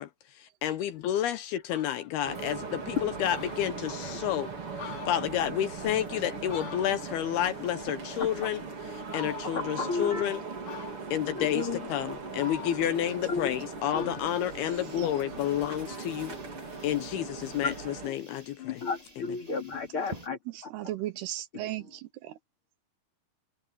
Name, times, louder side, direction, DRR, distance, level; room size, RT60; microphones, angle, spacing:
voice 1, 0.0-4.5 4.9-8.6 8.9-10.4 11.1-16.4 16.8-18.8, left 11 dB, 75° left, 2.6 m, -30 dB
Fowl, 1.1-1.2 1.5-2.1 2.6-2.7 3.0-3.1 3.3-4.2 4.6-7.3 7.6-8.6 9.1-9.8 10.7-11.3 11.9-13.6 13.9-15.5, left 7 dB, 50° left, 4.7 m, -46 dB
sound 1, 2.2-18.1, right 4 dB, 35° right, 4.0 m, -39 dB
voice 2, 9.7-10.2 11.4-11.9 13.3-13.5 13.9-14.2 15.5-15.6 17.6-17.7 18.0-18.1 18.6-20.7 21.5-21.7, left 4 dB, 35° left, 3.0 m, -33 dB
sound 2, 14.2-20.3, right 2 dB, 15° right, 1.2 m, -51 dB
voice 3, 20.5-22.4, right 14 dB, 75° right, 2.7 m, -36 dB
omnidirectional pair, 5.0 m